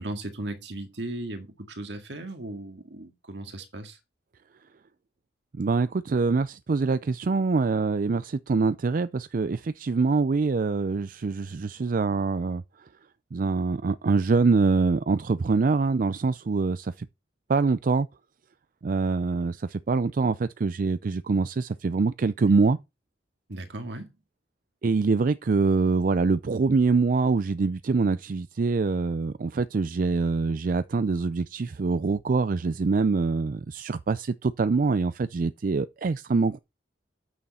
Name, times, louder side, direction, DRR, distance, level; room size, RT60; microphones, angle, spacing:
voice 1, 0.0-4.0 22.5-22.8 23.5-24.1, right 1 dB, 75° right, 2.1 m, -37 dB
voice 2, 5.5-12.6 13.3-17.1 17.5-18.1 18.8-22.8 24.8-36.6, right 4 dB, 50° right, 0.4 m, -24 dB
9.1 x 6.4 x 4.3 m
head